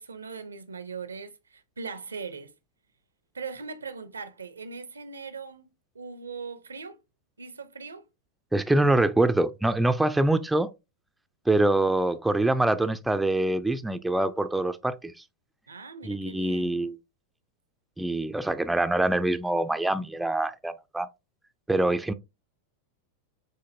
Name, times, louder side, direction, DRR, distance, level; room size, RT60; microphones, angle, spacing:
voice 1, 0.0-2.5 3.3-5.6 5.9-7.0 7.4-8.1 15.7-16.8, right 5 dB, 75° right, 0.5 m, -40 dB
voice 2, 8.5-10.7 11.5-15.1 16.0-17.0 18.0-21.1 21.7-22.1, right 2 dB, 5° right, 0.3 m, -24 dB
7.1 x 2.6 x 2.5 m
figure-of-eight pair, 90°, 0 cm